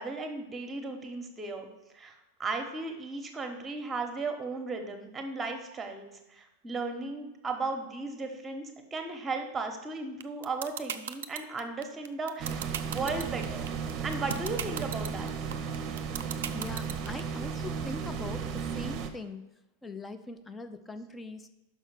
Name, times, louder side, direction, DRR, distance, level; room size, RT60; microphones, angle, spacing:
voice 1, 0.0-1.7 1.9-2.1 2.4-13.7 14.0-15.3, right 3 dB, 15° right, 5 dB, 1.1 m, -36 dB
sound 1, 10.2-17.2, right 10 dB, 60° right, 0.4 m, -35 dB
sound 2, 12.4-19.1, right 6 dB, 35° right, 0.7 m, -35 dB
voice 2, 16.5-19.4 19.8-21.5, left 2 dB, 10° left, 9 dB, 0.5 m, -42 dB
5.6 x 5.5 x 6.2 m, 0.98 s
figure-of-eight pair, 90°, 0 cm